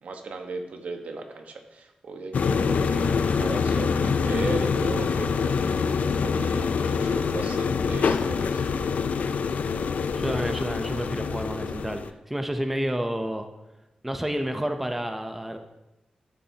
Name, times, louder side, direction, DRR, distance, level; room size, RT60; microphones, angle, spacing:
voice 1, 0.0-5.6 6.1-8.9, right 3 dB, 75° right, 4 dB, 1.3 m, -36 dB
sound 1, 2.3-12.1, left 5 dB, 75° left, 0.5 m, -25 dB
voice 2, 10.2-13.5 14.0-15.6, equal, 5° right, 6 dB, 0.7 m, -30 dB
12.5 x 9.1 x 2.9 m, 0.96 s
wide cardioid pair, 130°, 2 cm